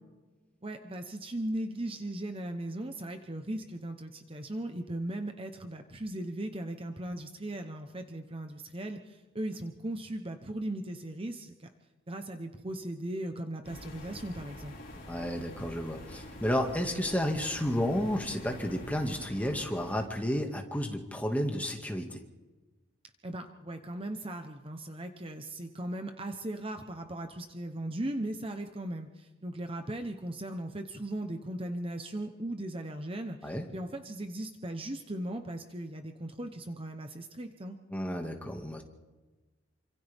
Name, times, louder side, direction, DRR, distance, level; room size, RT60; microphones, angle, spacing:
voice 1, 0.6-11.7 12.1-14.7 23.2-37.8, right 1 dB, 30° right, 6 dB, 1.0 m, -38 dB
sound 1, 13.6-20.1, left 1 dB, 50° left, 6.9 m, -46 dB
voice 2, 15.1-22.2 33.4-33.7 37.9-38.8, equal, 10° left, 2 dB, 2.1 m, -32 dB
28.0 x 26.0 x 3.6 m, 1.2 s
head